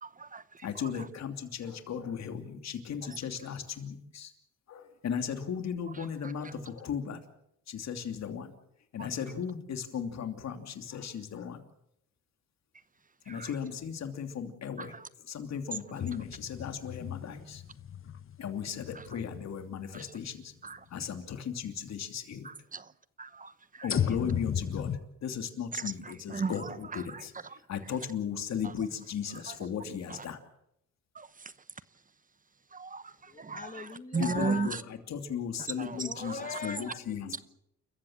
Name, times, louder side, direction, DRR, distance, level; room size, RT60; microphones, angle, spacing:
voice 1, 0.0-0.4 13.3-13.5 14.8-15.0 19.9-20.0 20.6-20.8 22.4-22.8 23.2-23.5 23.8-23.9 25.7-27.2 31.2-31.3 32.7-33.0 33.4-33.6 34.1-34.7 35.8-36.3, right 5 dB, 25° right, 0.9 m, -35 dB
voice 2, 0.6-4.3 4.7-7.2 7.7-8.5 8.9-11.6 13.3-14.9 15.3-17.6 18.4-20.5 20.9-22.5 23.8-24.9 25.2-27.3 27.7-30.4 34.2-34.8 35.1-36.4 36.6-37.3, left 7 dB, 60° left, 2.9 m, -36 dB
sound 1, 16.0-20.3 20.9-21.0 23.9-25.0, left 8 dB, 45° left, 1.2 m, -35 dB
voice 3, 33.3-34.7 35.9-37.4, left 5 dB, 25° left, 2.5 m, -41 dB
29.5 x 15.0 x 7.5 m
cardioid pair, 90°, 30 cm